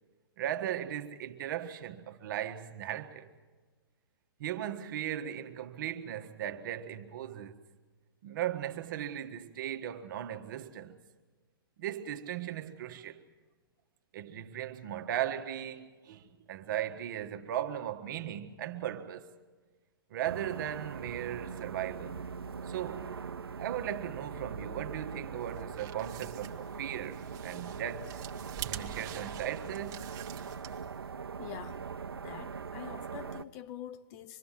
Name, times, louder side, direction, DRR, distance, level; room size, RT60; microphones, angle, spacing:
voice 1, 0.4-3.3 4.4-7.5 8.2-11.0 11.8-13.2 14.1-19.3 20.1-22.2 22.7-23.1 23.5-28.2 28.7-30.1, right 11 dB, 55° right, 1.6 m, -37 dB
sound 1, 20.2-33.4, right 6 dB, 90° right, 0.7 m, -41 dB
sound 2, 25.5-31.0, right 12 dB, 30° right, 1.6 m, -46 dB
voice 2, 31.4-31.9 32.1-34.4, left 11 dB, 40° left, 1.1 m, -45 dB
26.0 x 21.5 x 7.6 m
hypercardioid pair, 120°, 12 cm